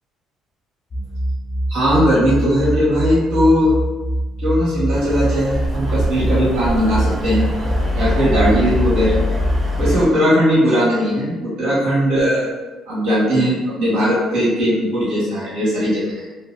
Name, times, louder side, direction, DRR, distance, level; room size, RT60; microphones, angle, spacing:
sound 1, 0.9-10.0, right 1 dB, 35° left, 0.3 m, -24 dB
voice 1, 1.7-3.7 4.4-7.5 7.9-9.2 9.8-12.5 12.9-16.3, equal, 90° right, -8 dB, 1.4 m, -18 dB
sound 2, 4.9-10.1, left 1 dB, 20° right, 0.8 m, -23 dB
2.8 x 2.4 x 2.6 m, 1.2 s
cardioid pair, 120°, 0 cm